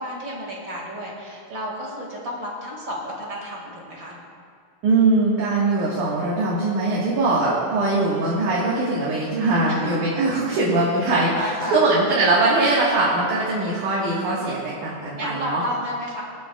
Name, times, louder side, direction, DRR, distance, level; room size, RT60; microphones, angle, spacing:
voice 1, 0.0-4.2 9.7-9.9 11.3-11.8 15.2-16.2, equal, 40° right, -2 dB, 2.6 m, -31 dB
voice 2, 4.8-15.6, right 2 dB, 75° right, -7 dB, 3.1 m, -21 dB
26.5 x 8.8 x 2.4 m, 2.2 s
omnidirectional pair, 3.5 m